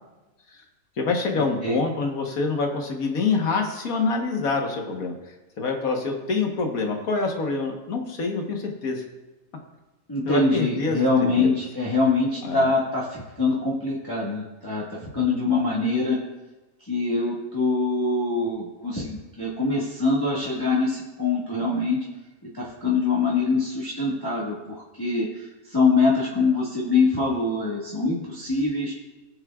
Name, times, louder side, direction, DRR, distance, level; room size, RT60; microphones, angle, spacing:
voice 1, 1.0-5.1 5.6-9.0 10.3-11.6 12.4-12.7, left 4 dB, 85° left, 2 dB, 1.7 m, -26 dB
voice 2, 10.1-14.8 15.1-16.2 16.9-22.0 22.5-25.3 25.7-28.9, left 3 dB, 15° left, -7 dB, 1.6 m, -24 dB
19.0 x 7.3 x 2.4 m, 1.2 s
omnidirectional pair, 1.5 m